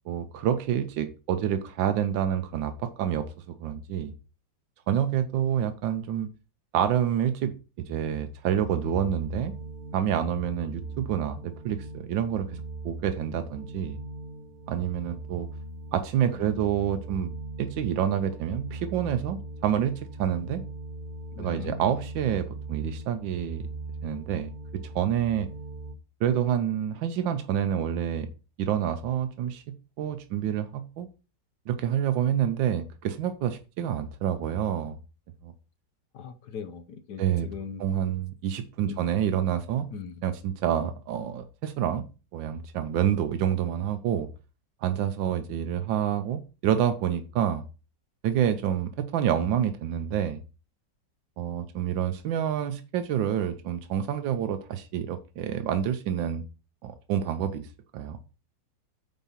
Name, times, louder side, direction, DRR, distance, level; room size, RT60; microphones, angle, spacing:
voice 1, 0.1-4.1 4.9-6.3 6.7-7.5 7.9-9.5 9.9-14.0 14.7-15.5 15.9-17.3 17.6-20.6 21.4-23.6 24.0-25.5 26.2-28.3 28.6-31.1 31.7-35.0 35.4-35.5 37.2-37.5 37.8-39.9 40.2-42.0 42.3-44.3 44.8-47.6 48.2-50.4 51.4-56.4 56.8-57.6 57.9-58.2, right 9 dB, 85° right, 9 dB, 1.5 m, -28 dB
sound 1, 8.5-25.9, right 2 dB, 60° right, 1.5 m, -40 dB
voice 2, 16.2-16.7 21.4-21.8 36.1-37.8 38.8-39.1 39.9-40.2, left 6 dB, 65° left, 10 dB, 1.5 m, -40 dB
9.1 x 4.2 x 5.7 m, 0.33 s
omnidirectional pair, 2.0 m